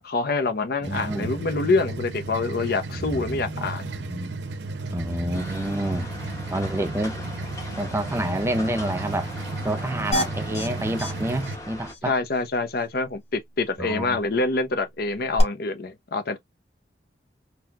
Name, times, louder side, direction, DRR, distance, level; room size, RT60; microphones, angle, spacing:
voice 1, 0.0-3.9 12.0-16.4, left 3 dB, 60° left, 0.8 m, -26 dB
voice 2, 0.8-1.3 2.9-4.3 4.9-6.1 6.5-7.2 7.8-9.3 9.6-12.1 13.8-14.2, right 1 dB, 15° right, 0.5 m, -29 dB
sound 1, 0.8-11.6, right 3 dB, 70° right, 0.7 m, -33 dB
sound 2, 5.3-11.9, left 1 dB, 20° left, 0.9 m, -39 dB
sound 3, 10.1-10.7 11.0-11.1 11.4-11.5 11.9-12.0 15.4-15.5, left 1 dB, 35° left, 1.5 m, -26 dB
4.1 x 2.8 x 2.4 m
head